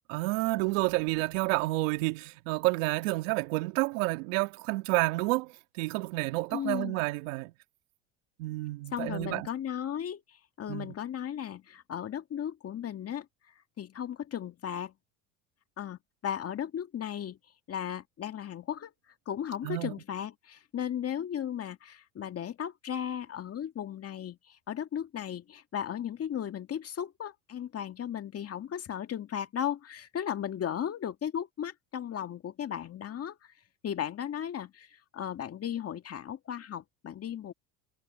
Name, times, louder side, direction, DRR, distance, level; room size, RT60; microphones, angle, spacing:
voice 1, 0.1-7.5 8.4-9.5 10.7-10.9 19.6-19.9, right 22 dB, 75° right, 2.1 m, -30 dB
voice 2, 6.5-7.0 8.9-13.3 13.8-14.9 15.8-17.4 17.7-18.9 19.3-33.4 33.8-37.5, left 9 dB, 35° left, 2.2 m, -36 dB
supercardioid pair, 100°, 39 cm